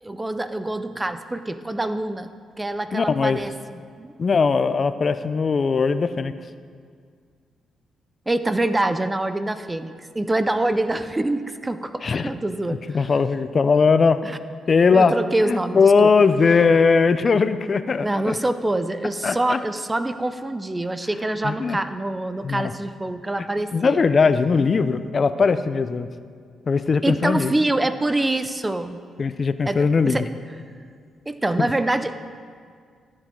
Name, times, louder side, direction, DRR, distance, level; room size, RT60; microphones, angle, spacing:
voice 1, 0.0-2.3 2.6-4.1 8.3-12.8 14.2-14.4 14.9-16.1 18.0-24.0 27.0-29.0 29.7-30.3 31.3-32.2, right 1 dB, 20° right, 11 dB, 0.5 m, -25 dB
voice 2, 2.9-3.4 4.2-6.3 12.0-12.3 12.9-14.2 14.7-15.1 15.4-18.4 19.2-19.6 21.4-21.8 22.4-22.7 23.7-26.1 26.7-27.5 29.2-30.2, left 5 dB, 45° left, 12 dB, 0.5 m, -19 dB
13.0 x 8.5 x 3.7 m, 2.1 s
cardioid pair, 75°, 0 cm